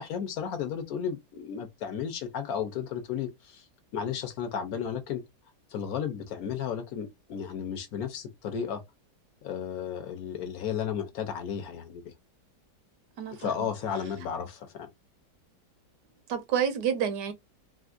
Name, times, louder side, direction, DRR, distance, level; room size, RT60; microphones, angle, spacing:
voice 1, 0.0-3.6 3.9-5.2 5.7-8.8 9.4-12.1 13.3-14.9, left 8 dB, 65° left, 1.0 m, -33 dB
voice 2, 13.2-13.5 16.3-17.3, right 8 dB, 90° right, 1.3 m, -28 dB
3.4 x 2.4 x 2.3 m
omnidirectional pair, 1.8 m